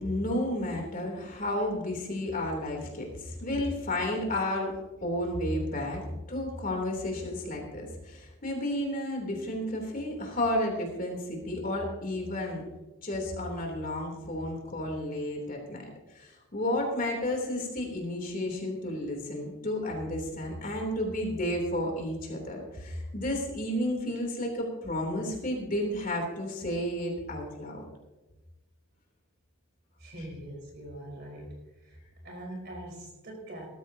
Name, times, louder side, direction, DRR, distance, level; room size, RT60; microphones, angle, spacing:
voice 1, 0.0-4.7 5.0-12.6 13.0-27.8, left 1 dB, 40° left, 1 dB, 3.2 m, -32 dB
voice 2, 30.0-31.6 31.8-32.0 32.2-33.7, right 1 dB, 50° right, 0 dB, 4.4 m, -42 dB
19.5 x 13.5 x 2.8 m, 1.1 s
head